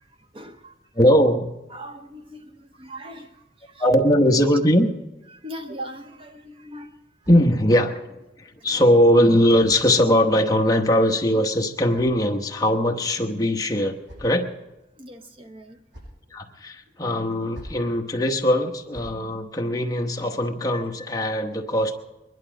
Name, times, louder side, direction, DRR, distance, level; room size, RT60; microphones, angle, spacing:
voice 1, 0.0-0.8 1.7-3.8 5.3-7.0 8.6-8.8 15.0-15.8 20.7-21.1, equal, 30° right, 6 dB, 0.7 m, -40 dB
voice 2, 0.9-1.5 3.8-4.9 7.3-14.5 16.3-21.9, equal, 20° left, 3 dB, 1.0 m, -20 dB
sound 1, 6.8-8.0 9.0-10.4 11.4-12.7 13.6-14.6 15.5-16.3 17.3-17.9 18.7-19.2, equal, 85° right, 7.2 m, -48 dB
22.0 x 11.5 x 5.0 m, 1.0 s
head